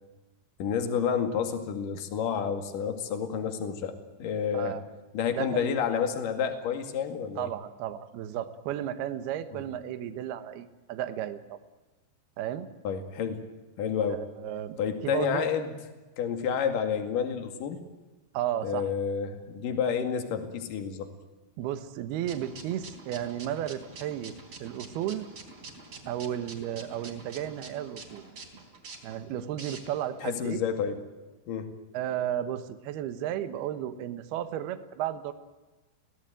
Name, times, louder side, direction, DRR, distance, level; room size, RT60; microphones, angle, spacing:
voice 1, 0.6-4.8 5.1-7.5 9.5-9.6 12.8-13.4 13.8-14.2 14.8-15.7 16.2-17.8 18.6-21.1 30.2-31.0 31.5-31.7, left 7 dB, 55° left, 6 dB, 3.3 m, -30 dB
voice 2, 4.5-4.8 5.3-5.7 7.4-11.6 12.4-12.7 14.1-14.8 15.0-15.4 18.3-18.9 21.6-24.3 24.6-25.3 26.1-28.2 29.0-30.6 31.9-35.3, right 11 dB, 70° right, 11 dB, 2.9 m, -33 dB
sound 1, 22.3-30.1, right 3 dB, 35° right, 4.2 m, -46 dB
24.5 x 17.5 x 9.1 m, 1.2 s
omnidirectional pair, 5.4 m